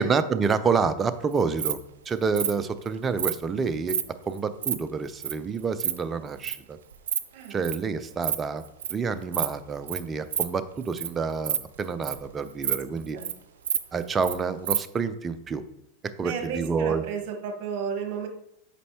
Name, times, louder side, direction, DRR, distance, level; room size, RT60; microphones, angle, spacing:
voice 1, 0.0-1.8 2.1-4.0 4.3-6.8 7.5-8.6 8.9-13.2 13.9-15.6 16.2-17.0, right 5 dB, 25° right, 11 dB, 0.6 m, -28 dB
Insect, 1.3-1.7 2.3-2.5 3.2-3.4 3.8-4.0 4.4-4.7 5.2-5.3 5.6-5.9 6.4-6.6 6.9-7.2 7.4-7.8 8.1-8.4 8.6-8.9 9.3-9.5 9.9-10.0 10.3-10.4 10.8-11.1 11.4-12.3 12.6-12.8 13.0-13.3 13.6-14.3 14.6-14.8, right 8 dB, 75° right, 0.6 m, -28 dB
voice 2, 16.2-18.3, right 6 dB, 55° right, 4 dB, 1.4 m, -33 dB
8.2 x 5.4 x 3.0 m, 0.79 s
hypercardioid pair, 95°, 0 cm